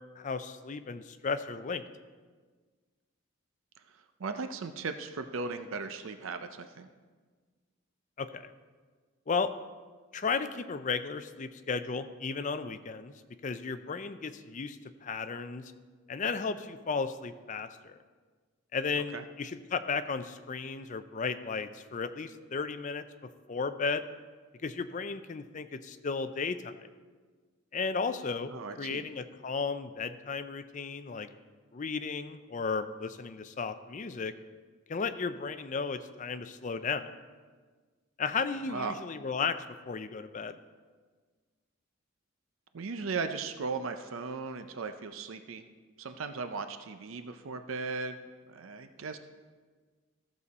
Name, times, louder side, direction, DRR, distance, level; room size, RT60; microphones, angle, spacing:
voice 1, 0.2-1.8 8.2-8.5 9.3-9.5 10.1-13.1 13.4-15.7 16.1-17.9 18.7-24.1 24.6-26.9 27.7-31.3 31.7-34.3 34.9-37.1 38.2-40.6, left 5 dB, 35° left, 11 dB, 0.4 m, -34 dB
voice 2, 4.2-6.9 19.1-19.2 28.5-29.0 38.7-39.0 42.7-45.6 46.0-48.2 48.5-49.2, right 4 dB, 75° right, 8 dB, 0.5 m, -37 dB
14.5 x 6.9 x 4.1 m, 1.5 s
head